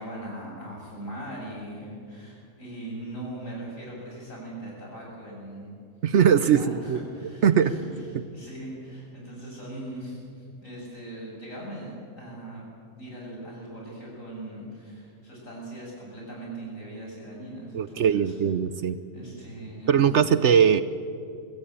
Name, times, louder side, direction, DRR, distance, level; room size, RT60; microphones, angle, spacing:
voice 1, 0.0-5.8 6.3-8.0 8.3-12.6 13.0-18.3 19.1-20.1, right 1 dB, 65° left, -3 dB, 7.4 m, -40 dB
voice 2, 6.0-7.0 7.4-7.7 17.7-19.0 19.9-20.8, right 8 dB, 60° right, 13 dB, 0.9 m, -20 dB
22.5 x 16.0 x 8.9 m, 2.4 s
omnidirectional pair, 1.5 m